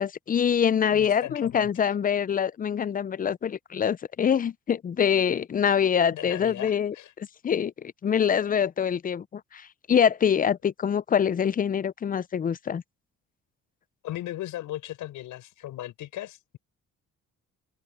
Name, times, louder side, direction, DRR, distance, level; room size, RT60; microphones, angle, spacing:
voice 1, 0.0-12.8, left 8 dB, 30° left, 0.4 m, -25 dB
voice 2, 0.9-1.7 6.1-7.1 14.0-16.6, left 14 dB, 85° left, 6.4 m, -37 dB
open air
cardioid pair, 90°, 30 cm